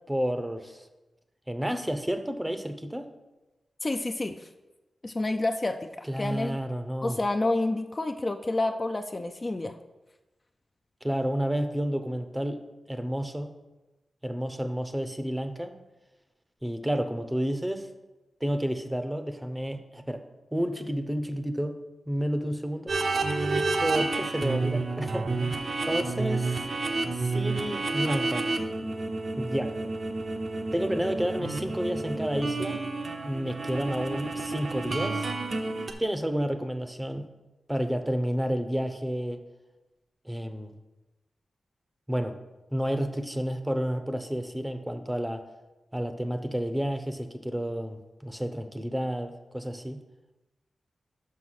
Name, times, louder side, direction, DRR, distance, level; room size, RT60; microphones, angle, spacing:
voice 1, 0.1-0.8 1.5-3.1 6.1-7.2 11.0-12.6 12.9-13.5 14.2-15.7 16.6-17.9 18.4-20.2 20.5-21.8 22.1-22.9 23.8-25.6 25.8-26.6 27.1-28.5 29.4-29.8 30.7-32.8 33.2-35.3 36.0-37.3 37.7-39.4 40.3-40.7 42.1-42.4 42.7-45.4 45.9-50.0, equal, 10° right, 8 dB, 0.7 m, -30 dB
voice 2, 3.8-4.5 5.0-6.6 7.0-9.8, left 2 dB, 30° left, 6 dB, 0.4 m, -29 dB
sound 1, 22.9-35.9, right 3 dB, 55° right, 0.8 m, -30 dB
5.8 x 5.7 x 6.2 m, 1.1 s
wide cardioid pair, 90°, 0 cm